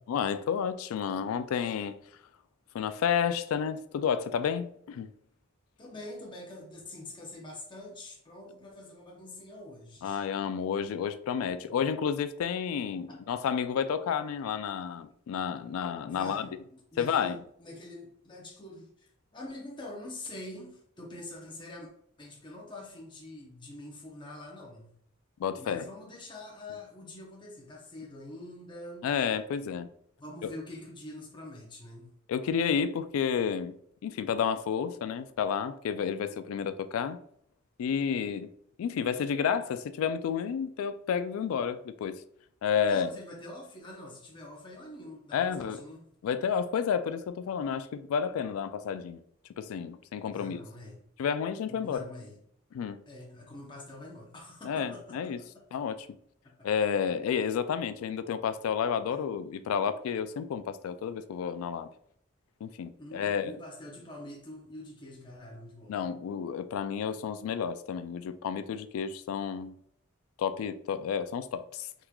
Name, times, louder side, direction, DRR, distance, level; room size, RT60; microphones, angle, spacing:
voice 1, 0.1-2.0 2.7-5.1 10.0-16.5 17.0-17.4 25.4-25.8 29.0-29.9 30.4-30.5 32.3-33.7 34.0-37.2 37.8-38.5 38.8-42.2 42.6-43.1 45.3-45.8 46.2-49.2 49.6-50.6 51.2-52.0 52.7-53.0 54.6-55.4 55.7-56.1 56.6-61.9 62.6-63.5 65.9-69.7 70.4-71.9, left 7 dB, 90° left, 0.3 m, -31 dB
voice 2, 5.8-10.3 13.1-13.3 16.0-21.9 22.2-24.9 25.6-29.1 30.2-32.2 42.9-46.1 50.3-51.0 51.7-52.4 53.1-55.7 56.4-56.7 63.0-66.0, left 1 dB, 25° left, 0.7 m, -45 dB
3.6 x 3.0 x 2.2 m
head